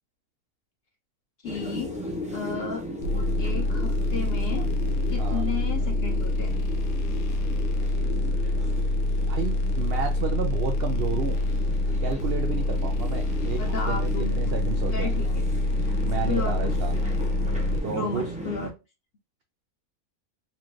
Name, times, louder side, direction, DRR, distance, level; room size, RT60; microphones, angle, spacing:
voice 1, 1.4-1.9 2.3-2.8 3.4-4.7 5.1-6.6 13.6-14.6 14.9-15.4 16.3-17.2 17.9-18.7, left 4 dB, 55° left, 2 dB, 0.8 m, -33 dB
sound 1, 1.4-18.7, left 1 dB, 10° right, 0.4 m, -36 dB
sound 2, 3.0-17.8, left 2 dB, 70° left, 1.1 m, -26 dB
voice 2, 9.3-11.4 12.0-15.1 16.0-16.9 17.8-18.3, right 7 dB, 75° right, 5 dB, 0.5 m, -32 dB
4.2 x 2.4 x 3.1 m, 0.28 s
omnidirectional pair, 1.6 m